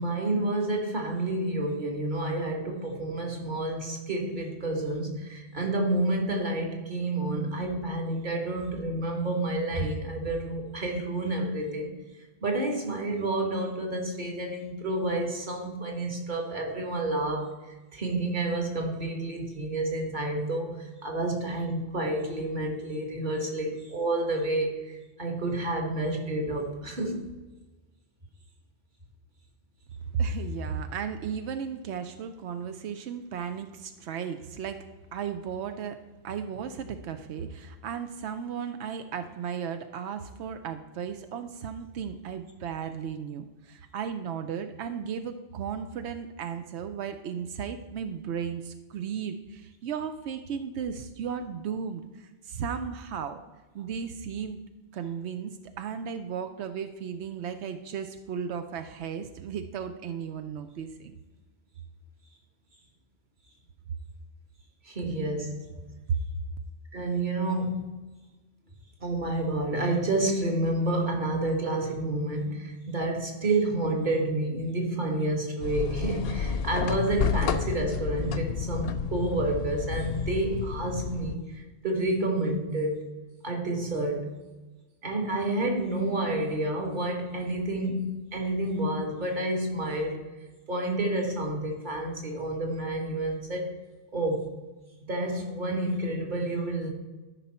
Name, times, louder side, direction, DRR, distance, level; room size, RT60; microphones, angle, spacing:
voice 1, 0.0-12.0 12.4-27.3 64.9-65.7 66.9-68.0 69.0-83.1 83.4-84.3 85.0-90.3 90.7-93.7 94.1-94.5 95.0-96.9, right 2 dB, 45° right, 1 dB, 1.7 m, -29 dB
voice 2, 30.1-53.4 53.7-54.6 54.9-61.1 66.1-66.2, right 7 dB, 90° right, 8 dB, 0.9 m, -35 dB
sound 1, 75.6-81.4, left 7 dB, 70° left, 0.8 m, -30 dB
13.0 x 5.5 x 4.2 m, 1.2 s
omnidirectional pair, 1.1 m